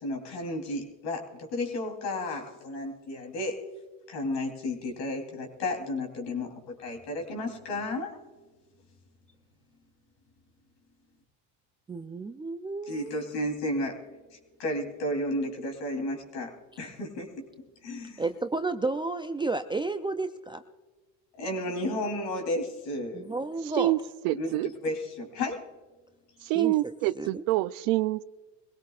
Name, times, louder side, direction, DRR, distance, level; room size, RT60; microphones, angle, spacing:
voice 1, 0.0-3.6 4.1-6.5 6.8-8.2 12.9-14.0 14.6-16.5 16.8-17.4 17.8-18.2 21.4-23.3 24.3-25.6, left 1 dB, 65° left, 3 dB, 3.5 m, -32 dB
voice 2, 11.9-13.2 18.2-20.6 23.1-23.9 26.5-26.7 27.2-27.4, right 3 dB, 10° right, 7 dB, 0.4 m, -31 dB
voice 3, 24.2-24.7 26.4-28.2, right 17 dB, 75° right, 16 dB, 0.6 m, -26 dB
22.0 x 17.5 x 2.4 m, 1.3 s
supercardioid pair, 95°, 44 cm